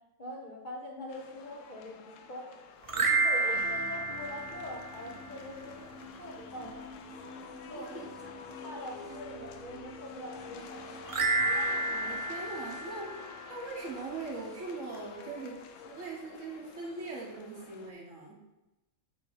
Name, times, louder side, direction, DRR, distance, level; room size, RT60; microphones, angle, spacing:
voice 1, 0.2-2.5 2.9-6.9 7.7-7.9 8.6-10.9, left 1 dB, 40° left, -1 dB, 1.0 m, -43 dB
sound 1, 1.1-17.9, left 6 dB, 75° left, 1.0 m, -48 dB
sound 2, 2.8-5.3 11.1-13.7, right 3 dB, 45° right, 0.4 m, -30 dB
sound 3, 3.5-16.0, left 1 dB, 5° right, 0.7 m, -52 dB
voice 2, 7.7-8.1 11.9-13.1 13.5-18.4, right 3 dB, 80° right, -2 dB, 1.8 m, -41 dB
7.4 x 3.0 x 5.4 m, 0.99 s
omnidirectional pair, 1.3 m